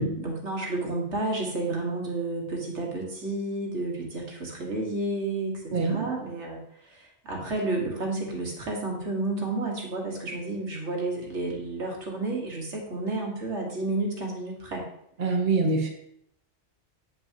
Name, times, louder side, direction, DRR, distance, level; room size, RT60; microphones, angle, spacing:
voice 1, 0.2-14.8, right 2 dB, 70° right, -1 dB, 1.8 m, -31 dB
voice 2, 5.7-6.1 15.2-15.9, right 3 dB, 45° right, 1 dB, 1.0 m, -25 dB
9.1 x 5.7 x 2.8 m, 0.75 s
omnidirectional pair, 1.2 m